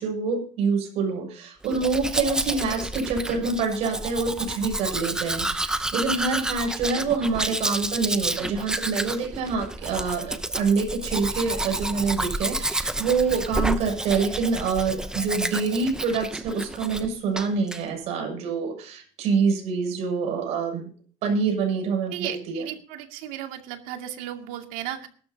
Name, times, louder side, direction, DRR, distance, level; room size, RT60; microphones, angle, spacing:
voice 1, 0.0-20.9 21.2-22.6, right 5 dB, 55° right, 2 dB, 7.3 m, -26 dB
Domestic sounds home sounds, 1.6-17.1 17.4-17.8, right 1 dB, 5° right, 0.8 m, -30 dB
voice 2, 6.6-7.1 22.1-25.1, right 11 dB, 80° right, 5 dB, 2.5 m, -35 dB
22.0 x 13.0 x 2.9 m, 0.43 s
cardioid pair, 160°, 13 cm